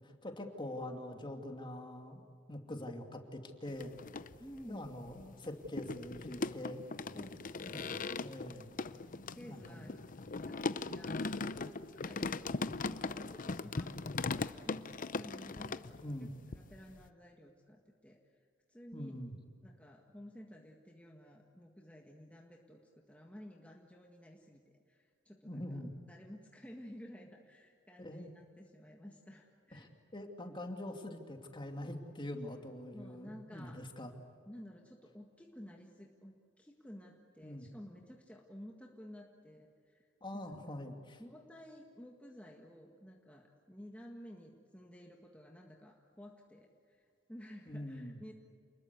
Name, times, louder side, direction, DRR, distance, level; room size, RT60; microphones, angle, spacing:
voice 1, 0.0-2.2 2.5-4.0 4.7-6.8 7.6-8.7 9.4-9.9 16.0-16.3 18.9-19.3 25.4-25.9 28.0-28.3 29.7-34.1 37.4-37.7 40.2-41.2 47.7-48.2, left 1 dB, 25° left, 4 dB, 2.5 m, -44 dB
sound 1, 3.7-4.6 5.0-16.3 16.5-17.1, left 3 dB, 45° left, 0.7 m, -39 dB
voice 2, 4.4-5.0 7.1-8.0 9.1-10.0 10.4-12.2 12.6-16.3 16.5-18.2 18.7-19.2 19.6-22.8 23.1-25.8 26.1-29.9 32.9-33.8 34.5-40.5 41.2-48.3, equal, 5° left, 0 dB, 1.7 m, -53 dB
29.0 x 21.0 x 8.3 m, 2.4 s
head